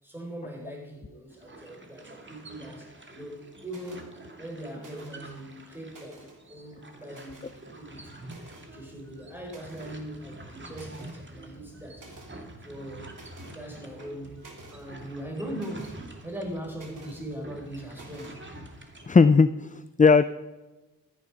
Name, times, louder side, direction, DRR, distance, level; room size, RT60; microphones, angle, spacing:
voice 1, 0.0-8.3 8.7-12.1 12.6-13.2 13.5-18.4, right 1 dB, 5° right, 5.4 m, -40 dB
sound 1, 1.3-19.1, right 1 dB, 30° right, 2.4 m, -47 dB
sound 2, 3.7-4.0 4.8-5.3 5.7-6.4 7.1-7.6 8.2-8.7 9.5-10.0 10.4-10.5 10.7-11.2 12.0-12.3 13.1-13.6 14.0-14.8 15.5-16.0 16.7-17.2 17.9-18.4, right 2 dB, 55° right, 3.5 m, -50 dB
voice 2, 19.1-20.2, left 4 dB, 20° left, 0.5 m, -18 dB
14.0 x 9.9 x 5.2 m
cardioid pair, 70°, 38 cm